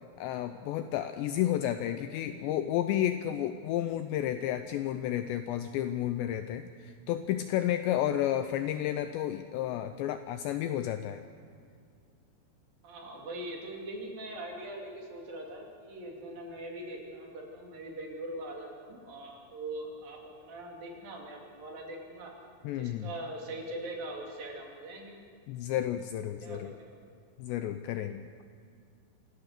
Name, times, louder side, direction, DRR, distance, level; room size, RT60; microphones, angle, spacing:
voice 1, 0.2-11.2 22.6-23.1 25.5-26.7 27.4-28.2, left 11 dB, 80° left, 9 dB, 2.6 m, -31 dB
voice 2, 12.8-22.3 22.7-25.2 26.4-27.0, right 1 dB, 50° right, 0 dB, 4.1 m, -42 dB
26.0 x 16.5 x 6.6 m, 2.3 s
omnidirectional pair, 5.6 m